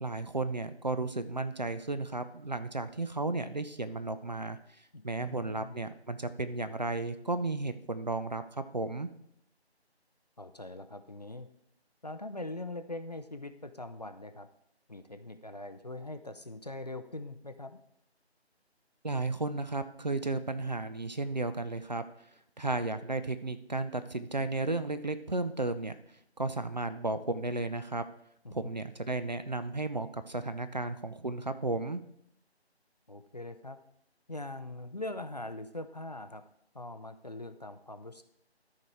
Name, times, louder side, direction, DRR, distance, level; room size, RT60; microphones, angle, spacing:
voice 1, 0.0-4.6 5.0-8.4 8.7-9.1 19.0-22.0 22.6-26.0 26.4-28.0 28.5-32.0, right 2 dB, 40° right, 11 dB, 0.5 m, -33 dB
voice 2, 4.9-5.8 10.4-11.5 12.0-14.5 14.9-17.8 28.4-28.7 33.1-33.8 34.3-36.4 36.7-38.2, left 2 dB, 40° left, 9 dB, 0.5 m, -42 dB
13.0 x 4.7 x 4.6 m, 0.73 s
figure-of-eight pair, 155°, 33 cm